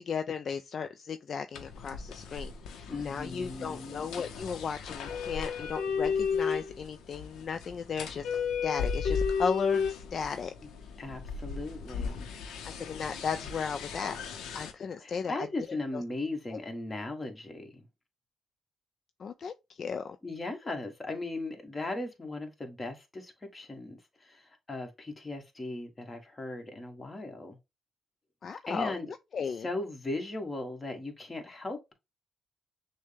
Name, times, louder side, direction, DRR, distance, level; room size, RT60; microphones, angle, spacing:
voice 1, 0.0-10.5 12.6-14.1 14.5-16.0 16.5-16.6 19.2-20.2 28.4-29.0 29.3-29.7, left 6 dB, 55° left, 0.4 m, -35 dB
sound 1, 1.6-14.7, left 6 dB, 85° left, 0.7 m, -34 dB
voice 2, 2.9-4.0 11.0-12.3 15.0-17.9 20.2-27.6 28.7-29.1 29.6-31.9, left 2 dB, 30° left, 1.5 m, -38 dB
6.2 x 2.2 x 3.4 m
cardioid pair, 75°, 0 cm